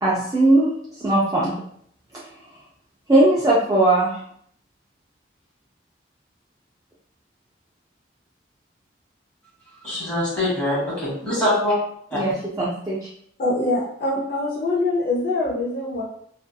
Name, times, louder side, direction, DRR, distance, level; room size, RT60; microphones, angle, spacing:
voice 1, 0.0-0.7 1.0-1.5 3.1-4.1 12.1-12.3 12.6-13.0, right 2 dB, 20° right, -7 dB, 0.3 m, -18 dB
voice 2, 9.8-11.7 12.1-12.2, left 1 dB, 5° left, -9 dB, 1.2 m, -23 dB
voice 3, 13.4-16.0, left 2 dB, 50° left, -4 dB, 0.5 m, -24 dB
2.7 x 2.4 x 2.2 m, 0.67 s
head